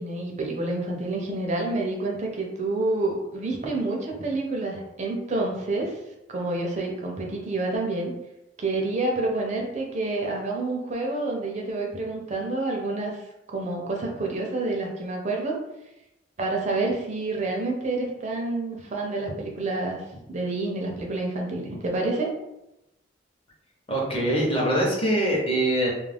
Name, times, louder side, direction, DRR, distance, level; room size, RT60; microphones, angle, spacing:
voice 1, 0.0-6.0 6.3-8.1 8.6-13.2 13.5-15.6 16.4-20.0 20.3-22.3, right 2 dB, 40° right, 0 dB, 0.5 m, -28 dB
voice 2, 23.9-25.9, right 1 dB, 30° left, -3 dB, 0.7 m, -23 dB
2.3 x 2.1 x 3.3 m, 0.90 s
head